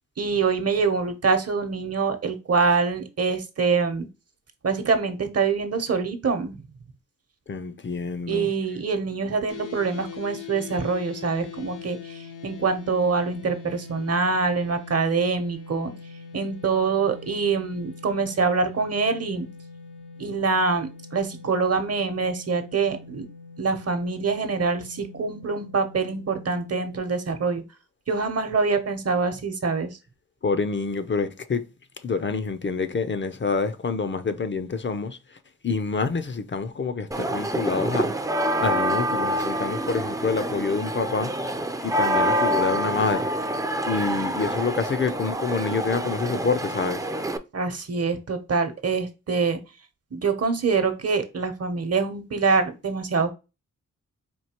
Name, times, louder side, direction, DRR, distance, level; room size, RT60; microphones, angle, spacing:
voice 1, 0.2-4.1 4.6-6.6 8.3-15.9 16.3-19.5 20.2-23.2 23.6-27.6 28.1-30.0 47.5-49.6 50.1-53.3, right 4 dB, 50° right, 0.9 m, -25 dB
voice 2, 7.5-8.5 30.4-31.6 32.0-35.2 35.6-38.1 38.6-41.3 41.8-43.3 43.9-47.0, left 4 dB, 40° left, 0.5 m, -27 dB
sound 1, 9.5-27.0, left 6 dB, 80° left, 0.8 m, -42 dB
sound 2, 37.1-47.4, right 1 dB, 10° right, 0.4 m, -26 dB
4.4 x 2.7 x 2.9 m
cardioid pair, 65°, 31 cm